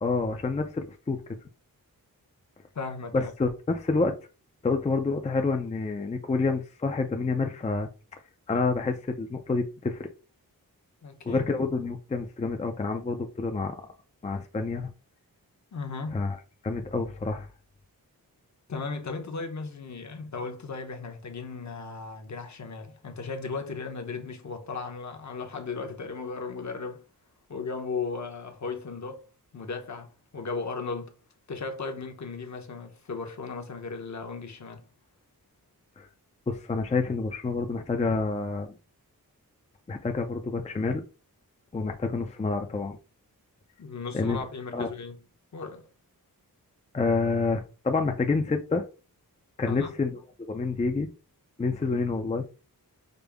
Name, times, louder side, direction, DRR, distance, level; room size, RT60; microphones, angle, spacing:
voice 1, 0.0-1.2 3.1-4.1 4.6-7.9 8.5-10.1 11.3-13.8 14.2-14.9 16.1-16.4 16.6-17.5 36.0-36.1 36.5-38.7 39.9-41.0 41.7-43.0 44.1-44.4 44.7-44.9 46.9-48.8 49.6-50.2 50.5-51.1 51.6-52.4, left 3 dB, 20° left, 0.4 m, -28 dB
voice 2, 2.7-3.3 11.0-11.7 15.7-16.2 18.7-27.0 27.5-29.2 29.5-31.1 31.5-34.8 43.8-45.2 45.5-45.9 49.6-49.9, left 4 dB, 50° left, 0.8 m, -36 dB
5.2 x 2.0 x 3.4 m
wide cardioid pair, 90°, 36 cm